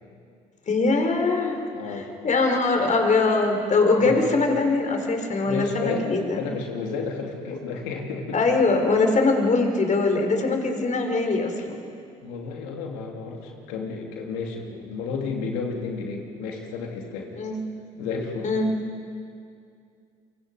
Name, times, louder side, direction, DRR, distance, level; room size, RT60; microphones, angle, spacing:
voice 1, 0.7-1.6 1.9-6.4 8.3-11.8 17.4-17.6 18.4-18.7, left 3 dB, 45° left, 3 dB, 4.6 m, -22 dB
voice 2, 1.7-2.2 4.0-4.2 5.4-8.4 12.2-17.3 18.0-18.5, left 5 dB, 80° left, 1 dB, 3.2 m, -32 dB
28.5 x 24.0 x 5.4 m, 2.4 s
hypercardioid pair, 60°, 18 cm